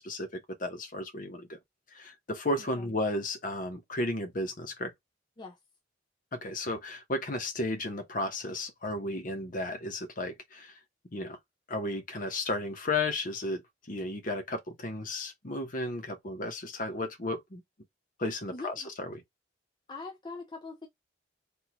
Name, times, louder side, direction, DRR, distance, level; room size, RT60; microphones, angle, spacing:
voice 1, 0.0-1.6 1.9-4.9 6.3-10.7 11.1-11.4 11.7-13.6 13.9-17.6 18.2-19.2, left 2 dB, 45° left, 1.0 m, -34 dB
voice 2, 18.5-18.9 19.9-20.9, left 3 dB, 25° left, 0.5 m, -42 dB
3.6 x 3.0 x 2.3 m
head